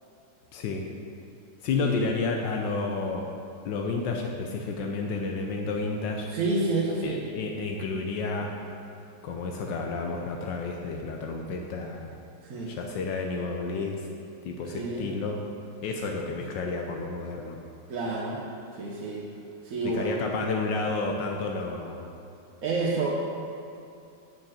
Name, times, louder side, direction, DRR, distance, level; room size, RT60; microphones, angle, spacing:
voice 1, 0.5-0.9 1.6-3.3 3.6-6.3 7.0-8.5 9.2-12.1 12.7-14.1 14.4-15.4 15.8-17.6 19.8-22.1, left 3 dB, 85° left, 1 dB, 1.4 m, -31 dB
voice 2, 1.7-2.1 6.3-7.2 12.4-12.8 14.7-15.1 17.9-18.4 18.7-19.3 19.6-20.4 22.6-23.1, right 3 dB, 55° right, -4 dB, 1.3 m, -29 dB
7.1 x 6.4 x 7.5 m, 2.6 s
omnidirectional pair, 1.9 m